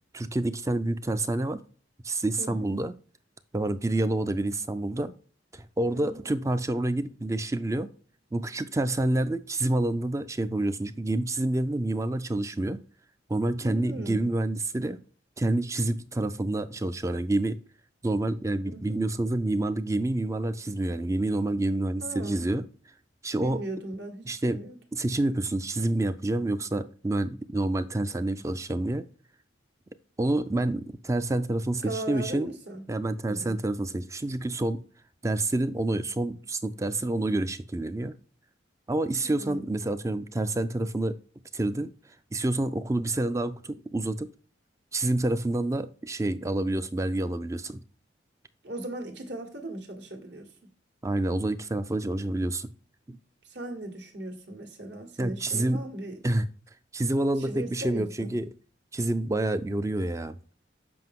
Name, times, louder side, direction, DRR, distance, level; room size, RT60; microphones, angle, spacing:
voice 1, 0.1-1.6 2.0-2.9 3.5-5.1 5.5-7.9 8.3-12.8 13.3-15.0 15.4-17.6 18.0-22.7 23.2-23.6 24.3-24.6 24.9-29.1 30.2-32.5 32.9-34.8 35.2-38.2 38.9-41.2 41.5-41.9 42.3-44.3 44.9-47.8 51.0-52.7 53.1-53.2 55.2-55.9 56.2-56.5 56.9-58.5 58.9-60.4, right 1 dB, 15° right, 0.4 m, -28 dB
voice 2, 2.4-2.7 5.9-6.3 13.6-14.3 18.6-19.0 22.0-22.5 23.4-24.8 31.8-32.8 33.2-33.6 39.2-39.8 48.6-50.5 53.4-56.2 57.4-58.3, right 1 dB, 60° right, 1.7 m, -38 dB
7.8 x 5.4 x 3.7 m
head